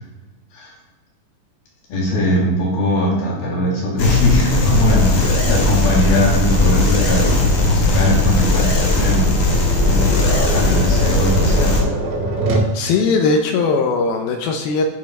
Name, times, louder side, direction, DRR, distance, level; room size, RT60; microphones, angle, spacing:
voice 1, 1.9-9.3 9.8-11.8, equal, 60° left, -4 dB, 4.4 m, -20 dB
sound 1, 4.0-11.8, left 2 dB, 45° left, 2.9 m, -17 dB
Tap, 5.3-12.8, right 3 dB, 85° right, 4.6 m, -26 dB
voice 2, 12.7-14.8, left 4 dB, 75° left, 3 dB, 2.3 m, -19 dB
11.5 x 5.3 x 5.4 m, 1.2 s
omnidirectional pair, 5.2 m